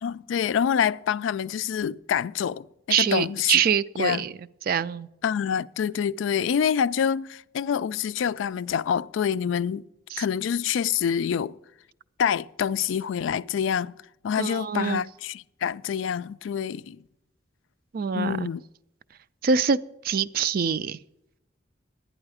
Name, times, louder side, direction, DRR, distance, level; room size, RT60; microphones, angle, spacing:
voice 1, 0.0-3.5 4.0-4.2 5.2-9.8 10.2-11.5 12.2-13.9 14.2-17.0 18.1-18.6, left 8 dB, 75° left, 0.3 m, -26 dB
voice 2, 2.9-4.3 4.6-5.1 10.1-10.2 14.4-15.0 17.9-18.5 19.4-21.0, right 6 dB, 50° right, 0.3 m, -25 dB
11.0 x 9.7 x 4.8 m
head